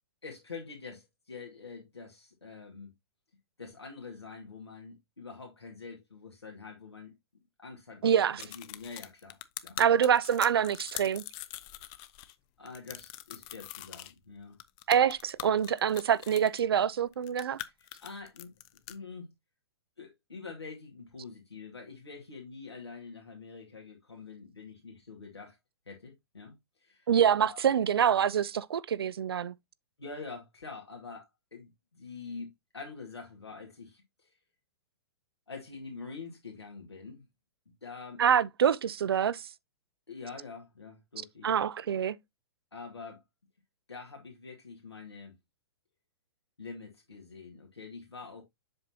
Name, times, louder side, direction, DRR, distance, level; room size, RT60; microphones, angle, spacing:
voice 1, 0.2-2.9 3.6-7.1 7.6-9.8 12.6-14.6 17.6-17.7 18.0-18.5 18.9-19.3 20.0-25.6 25.9-26.5 26.8-27.1 27.4-27.6 30.0-34.3 35.5-37.3 37.8-38.2 40.1-41.5 42.7-43.2 43.9-45.4 46.6-48.4, left 4 dB, 85° left, 2.1 m, -45 dB
voice 2, 8.0-8.4 9.8-11.2 14.9-17.6 27.1-29.5 38.2-39.5 41.4-42.2, right 8 dB, 65° right, 0.5 m, -26 dB
sound 1, 8.4-12.3 12.7-14.1 14.6-16.6 17.1-18.9, left 15 dB, 30° left, 0.6 m, -43 dB
7.6 x 6.0 x 2.8 m
figure-of-eight pair, 115°, 13 cm